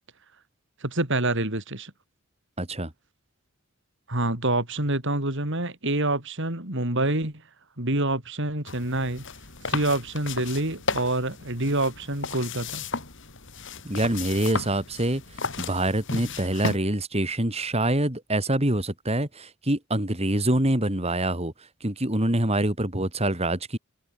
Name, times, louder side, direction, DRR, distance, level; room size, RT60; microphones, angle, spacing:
voice 1, 0.8-1.9 4.1-7.4 7.8-9.3 9.7-12.8, right 2 dB, 60° right, 4.6 m, -27 dB
voice 2, 2.6-2.9 13.8-15.2 15.6-21.5 21.8-23.8, right 1 dB, 30° right, 3.8 m, -25 dB
sound 1, 8.7-16.8, left 4 dB, 60° left, 6.8 m, -34 dB
head